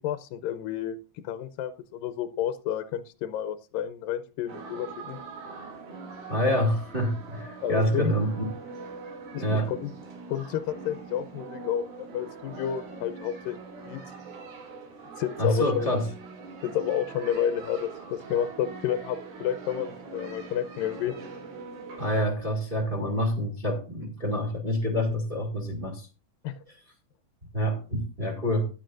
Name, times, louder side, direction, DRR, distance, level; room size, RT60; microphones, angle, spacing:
voice 1, 0.0-5.2 7.6-8.1 9.3-9.9 10.3-13.6 13.9-14.0 15.2-15.9 16.6-21.1 26.4-26.5, left 10 dB, 80° left, 10 dB, 2.3 m, -30 dB
sound 1, 4.5-22.3, right 4 dB, 90° right, 4.6 m, -43 dB
voice 2, 6.3-8.4 9.4-9.7 15.4-16.0 22.0-26.1 27.5-28.7, equal, 20° right, 2 dB, 1.6 m, -27 dB
15.0 x 10.5 x 2.6 m, 0.33 s
omnidirectional pair, 4.2 m